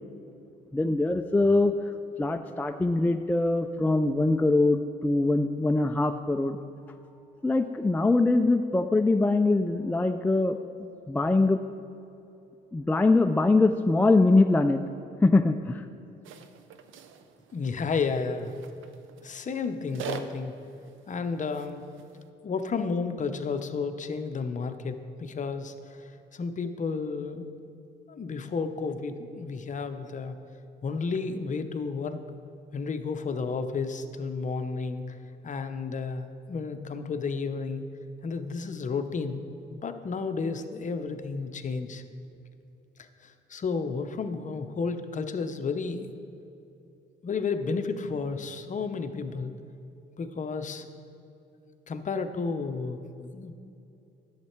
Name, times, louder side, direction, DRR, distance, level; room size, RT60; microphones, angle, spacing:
voice 1, 0.7-1.7 2.2-6.6 7.4-10.6 11.1-11.6 12.7-14.8 15.2-15.9, left 2 dB, 10° left, 6 dB, 0.3 m, -23 dB
sound 1, 16.2-22.3, right 6 dB, 80° right, 0.6 m, -44 dB
voice 2, 17.5-18.6 19.2-20.5 21.1-21.8 22.4-27.4 28.1-30.4 30.8-32.2 32.7-35.0 35.4-37.8 38.2-42.0 43.2-46.1 47.2-49.5 50.2-50.8 51.9-53.5, left 4 dB, 40° left, 8 dB, 0.7 m, -32 dB
11.0 x 7.4 x 4.5 m, 2.7 s
cardioid pair, 90°, 20 cm